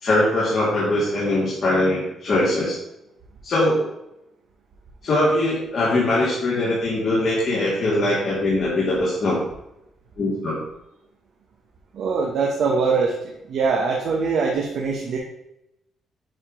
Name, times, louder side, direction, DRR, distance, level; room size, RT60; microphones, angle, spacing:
voice 1, 0.0-2.8 3.4-3.9 5.0-9.4 10.2-10.6, left 1 dB, 50° left, -7 dB, 2.0 m, -21 dB
voice 2, 12.0-13.1 13.5-15.2, right 4 dB, 70° right, -1 dB, 1.0 m, -22 dB
7.8 x 2.9 x 5.0 m, 0.84 s
cardioid pair, 90°, 0 cm